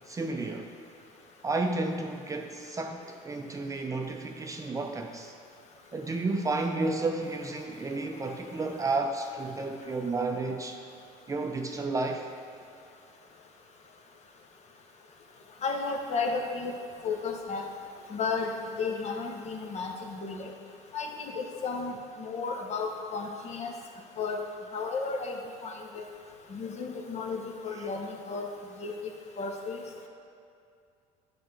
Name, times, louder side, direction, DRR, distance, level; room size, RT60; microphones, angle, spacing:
voice 1, 0.1-0.7 1.4-5.3 5.9-10.8 11.3-12.3 27.8-27.9, right 3 dB, 20° right, 4 dB, 0.5 m, -32 dB
voice 2, 15.6-16.8 17.0-17.6 18.1-18.5 18.8-20.5 20.9-23.7 24.2-24.4 24.7-26.1 26.5-28.5 28.8-29.0 29.4-29.8, left 4 dB, 45° left, 2 dB, 0.8 m, -33 dB
8.6 x 4.2 x 3.3 m, 2.5 s
supercardioid pair, 85°, 16 cm